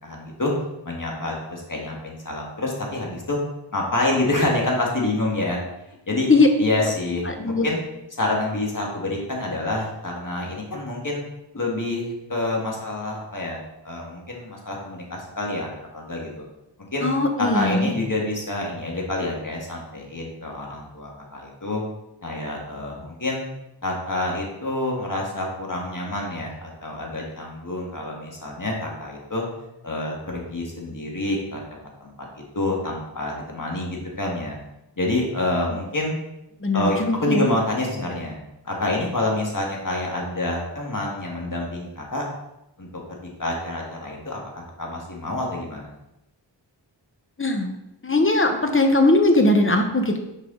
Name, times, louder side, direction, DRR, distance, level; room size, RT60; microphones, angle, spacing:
voice 1, 0.0-0.5 0.8-3.4 3.7-5.6 6.1-6.3 6.6-7.8 8.2-11.2 11.5-16.4 16.9-17.1 17.4-21.8 22.2-23.5 23.8-29.4 29.8-31.6 32.0-32.1 32.5-34.6 35.0-36.2 36.7-38.4 38.6-42.2 42.8-45.9, left 2 dB, 45° left, -1 dB, 1.8 m, -27 dB
voice 2, 7.3-7.7 17.0-18.0 36.6-37.5 47.4-47.7 48.0-50.2, left 2 dB, 30° left, 5 dB, 1.0 m, -19 dB
6.9 x 4.7 x 3.8 m, 0.90 s
wide cardioid pair, 40°, 44 cm